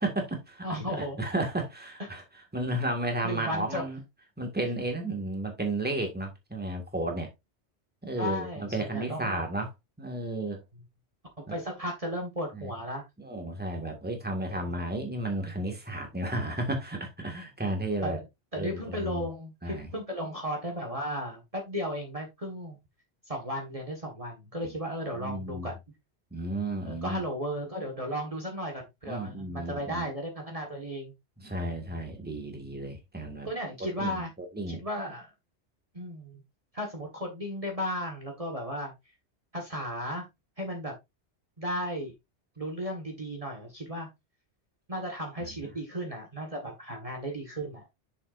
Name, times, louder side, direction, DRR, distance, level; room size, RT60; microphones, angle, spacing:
voice 1, 0.0-2.2 2.5-4.0 4.4-7.3 8.0-9.7 10.0-10.6 11.5-11.6 12.5-12.7 13.2-18.2 18.6-19.3 19.6-19.9 24.6-24.8 25.1-25.7 26.3-27.2 29.1-30.1 31.4-33.5 34.0-34.8 45.4-45.7, right 1 dB, 10° right, 1.8 m, -33 dB
voice 2, 0.6-1.2 3.2-3.8 8.2-9.4 11.4-13.0 14.5-14.7 18.0-18.2 18.5-22.8 23.3-25.8 26.8-31.1 31.8-31.9 33.4-34.3 34.7-35.3 35.9-36.4 36.7-38.9 39.5-40.2 40.6-40.9 41.6-42.1 42.6-44.1 44.9-47.8, equal, 30° right, 1.7 m, -35 dB
7.4 x 6.6 x 2.6 m
omnidirectional pair, 1.2 m